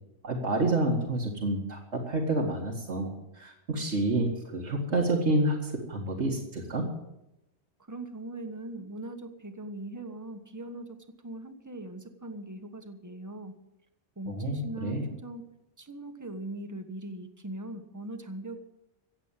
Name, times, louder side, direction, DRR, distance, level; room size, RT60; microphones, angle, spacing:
voice 1, 0.2-6.9 14.3-15.1, right 2 dB, 70° right, -1 dB, 2.2 m, -29 dB
voice 2, 7.8-13.6 14.2-15.5 15.8-18.6, right 1 dB, 15° right, 7 dB, 1.2 m, -40 dB
15.5 x 8.2 x 8.9 m, 0.92 s
omnidirectional pair, 1.2 m